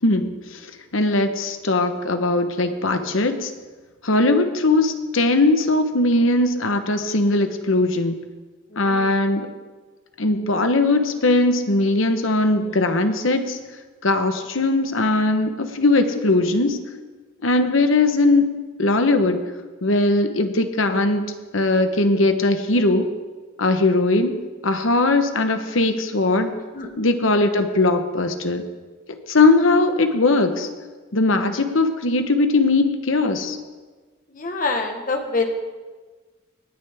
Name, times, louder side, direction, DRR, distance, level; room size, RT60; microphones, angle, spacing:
voice 1, 0.0-3.5 4.0-8.2 8.8-9.5 10.2-13.6 14.0-16.8 17.4-19.4 19.8-23.1 23.6-24.4 24.6-26.5 27.0-28.6 29.1-30.7 31.1-33.6, left 2 dB, 75° left, 7 dB, 1.1 m, -20 dB
voice 2, 8.7-9.2 26.7-26.9 34.3-35.5, left 3 dB, 40° left, 5 dB, 1.4 m, -26 dB
19.0 x 10.0 x 3.6 m, 1.3 s
head